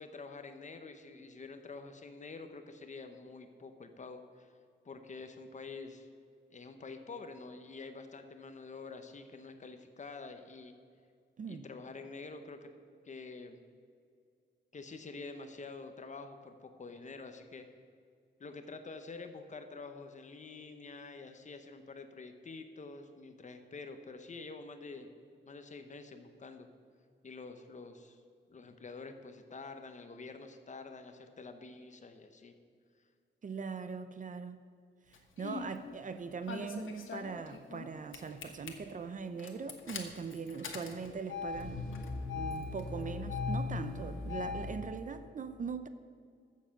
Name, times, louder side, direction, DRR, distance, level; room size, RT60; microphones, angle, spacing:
voice 1, 0.0-4.5 4.8-6.1 6.5-10.7 11.5-12.7 13.0-13.6 14.7-17.7 18.4-25.1 25.4-26.7 27.2-28.2 28.5-32.5, left 4 dB, 40° left, 7 dB, 0.9 m, -47 dB
voice 2, 33.4-34.6 35.4-41.8 42.3-45.9, right 5 dB, 40° right, 10 dB, 0.6 m, -41 dB
Engine starting, 35.1-35.7 36.5-37.9 38.1-38.7 39.4-44.7, left 4 dB, 85° left, 1.3 m, -39 dB
14.0 x 7.5 x 5.9 m, 2.3 s
wide cardioid pair, 165°, 20 cm